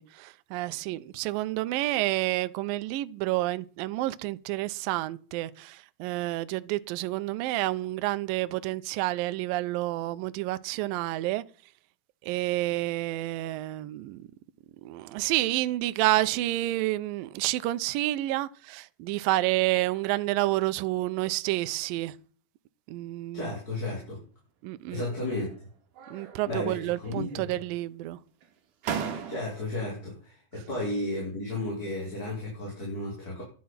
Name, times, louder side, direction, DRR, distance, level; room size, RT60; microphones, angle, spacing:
voice 1, 0.0-11.4 12.2-14.3 14.8-22.2 22.9-23.5 24.6-25.1 26.1-28.2, right 17 dB, 80° right, 2.0 m, -29 dB
voice 2, 23.3-24.2 24.9-25.5 26.1-27.5 29.0-33.4, left 2 dB, 20° left, 4.8 m, -34 dB
sound 1, 25.0-25.6 26.0-26.7 27.0-27.8 28.4-28.5 28.8-29.8, right 7 dB, 60° right, 2.7 m, -38 dB
10.5 x 10.5 x 5.7 m
omnidirectional pair, 4.9 m